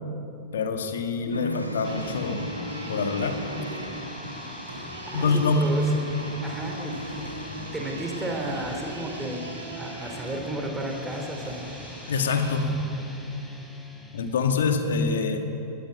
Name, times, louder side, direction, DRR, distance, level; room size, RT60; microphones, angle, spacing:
voice 1, 0.5-2.5 2.9-3.4 5.1-5.7 12.1-12.7 14.1-15.4, left 4 dB, 65° left, 6 dB, 2.0 m, -25 dB
sound 1, 1.3-8.6, equal, 90° left, 1.3 m, -37 dB
sound 2, 1.5-12.6, right 2 dB, 80° right, 2.7 m, -42 dB
sound 3, 1.8-14.7, left 1 dB, 5° left, 4.0 m, -43 dB
voice 2, 5.0-6.0 6.4-7.0 7.7-11.7, right 1 dB, 10° right, 2 dB, 3.3 m, -33 dB
19.0 x 15.0 x 9.5 m, 3.0 s
figure-of-eight pair, 90°, 0 cm